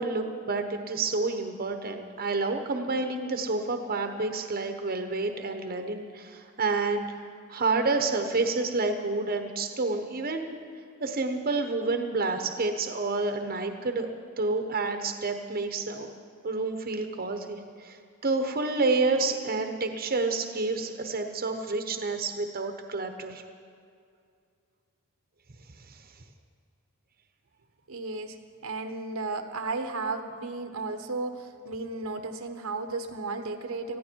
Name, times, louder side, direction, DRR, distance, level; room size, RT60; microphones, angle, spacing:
voice 1, 0.0-7.1 7.5-10.5 11.0-14.1 14.4-16.1 16.4-23.4 25.9-26.0, right 3 dB, 45° right, 6 dB, 1.1 m, -29 dB
voice 2, 27.9-28.4 28.6-34.0, right 3 dB, 70° right, 6 dB, 1.2 m, -34 dB
19.5 x 14.5 x 4.6 m, 2.3 s
head